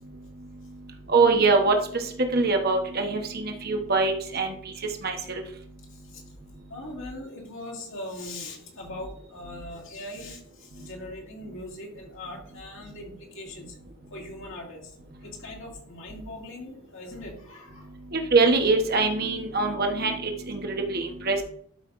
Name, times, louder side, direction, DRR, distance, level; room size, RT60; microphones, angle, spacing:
voice 1, 1.1-2.0 2.3-4.5 5.0-5.4 18.1-21.4, right 3 dB, 45° right, 4 dB, 1.1 m, -23 dB
voice 2, 6.7-10.4 10.8-13.7 14.1-14.8 15.2-17.8, left 1 dB, 60° left, -1 dB, 2.3 m, -40 dB
12.0 x 5.7 x 2.6 m, 0.62 s
head